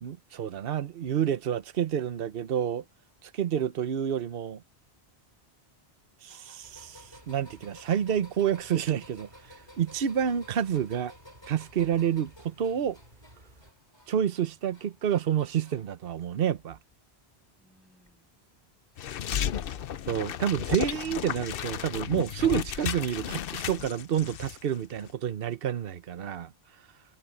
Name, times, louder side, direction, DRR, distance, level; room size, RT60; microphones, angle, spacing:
voice 1, 0.0-2.8 3.2-4.6 6.2-9.3 9.8-11.1 11.5-13.0 14.1-16.8 20.1-26.5, right 9 dB, 60° right, 1.0 m, -29 dB
sound 1, 6.3-16.0 16.3-16.9 18.1-18.2 19.3-19.4, equal, 25° left, 5.5 m, -55 dB
sound 2, 6.6-13.7, right 1 dB, 45° right, 5.7 m, -57 dB
voice 2, 17.5-18.4, equal, ahead, 7.6 m, -67 dB
sound 3, 19.0-24.6 24.8-25.1, left 9 dB, 65° left, 0.8 m, -33 dB
omnidirectional pair, 1.1 m